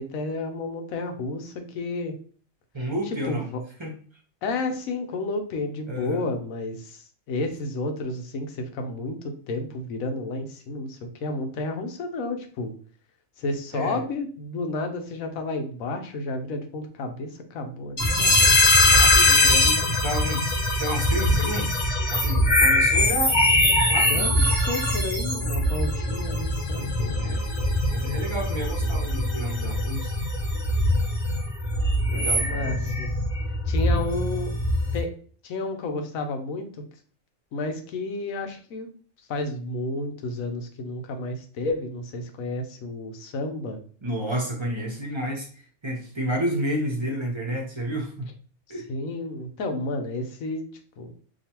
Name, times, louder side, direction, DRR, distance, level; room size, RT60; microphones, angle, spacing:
voice 1, 0.0-2.1 3.3-3.6 4.4-12.7 13.4-18.5 24.1-24.3 24.7-27.2 32.1-33.1 33.7-34.5 34.9-35.1 35.4-36.7 37.5-38.9 39.3-43.8 48.9-50.6 51.0-51.1, left 2 dB, 85° left, 5 dB, 1.2 m, -31 dB
voice 2, 2.7-3.5 3.8-3.9 5.9-6.3 13.7-14.0 18.9-21.7 22.1-24.4 27.1-30.2 32.1-32.9 44.0-48.3 48.7-48.9, right 1 dB, 25° right, 0 dB, 0.7 m, -31 dB
sound 1, 18.0-35.0, left 1 dB, 35° left, 1.1 m, -22 dB
5.1 x 2.4 x 2.9 m, 0.43 s
omnidirectional pair, 1.4 m